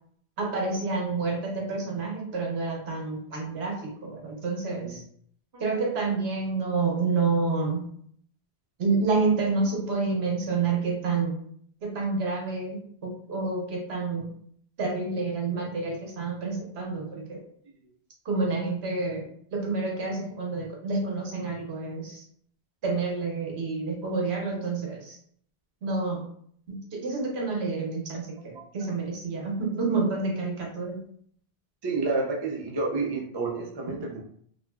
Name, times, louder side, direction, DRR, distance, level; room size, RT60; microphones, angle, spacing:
voice 1, 0.4-5.0 5.6-7.8 8.8-11.3 11.8-14.3 14.8-17.4 18.2-22.2 22.8-25.2 25.8-26.3 26.7-31.0, right 4 dB, 75° right, -1 dB, 1.0 m, -29 dB
voice 2, 31.8-34.2, right 3 dB, 40° right, -1 dB, 0.4 m, -30 dB
2.9 x 2.4 x 2.2 m, 0.63 s
omnidirectional pair, 1.1 m